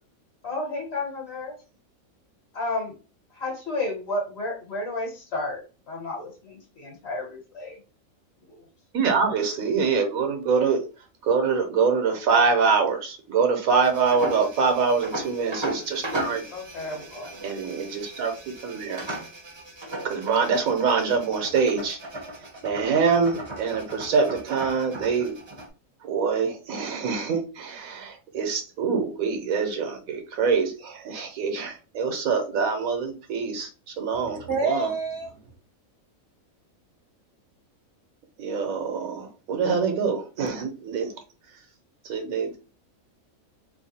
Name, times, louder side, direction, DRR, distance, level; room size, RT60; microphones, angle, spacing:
voice 1, 0.4-1.5 2.5-2.9 3.3-5.6 5.9-7.8 8.5-8.7 16.5-17.3, left 2 dB, 50° left, 1.5 m, -32 dB
voice 2, 8.9-10.8 11.2-16.4 17.4-19.1 20.0-22.0 22.6-25.3 26.0-34.9 38.4-41.1 42.0-42.6, right 5 dB, 75° right, 1.2 m, -25 dB
sound 1, 13.8-25.7, right 1 dB, 25° right, 0.6 m, -37 dB
voice 3, 34.1-35.3, right 3 dB, 60° right, 0.9 m, -28 dB
3.2 x 2.3 x 4.1 m
omnidirectional pair, 1.5 m